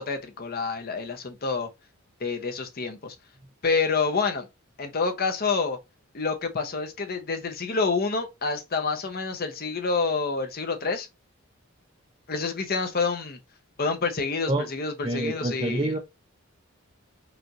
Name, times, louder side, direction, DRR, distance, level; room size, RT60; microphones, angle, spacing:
voice 1, 0.0-1.7 2.2-3.1 3.6-4.5 4.8-5.8 6.1-11.1 12.3-13.4 13.8-15.9, left 4 dB, 45° left, 0.8 m, -28 dB
voice 2, 15.0-16.0, right 1 dB, 25° right, 0.5 m, -27 dB
5.0 x 2.6 x 2.9 m
head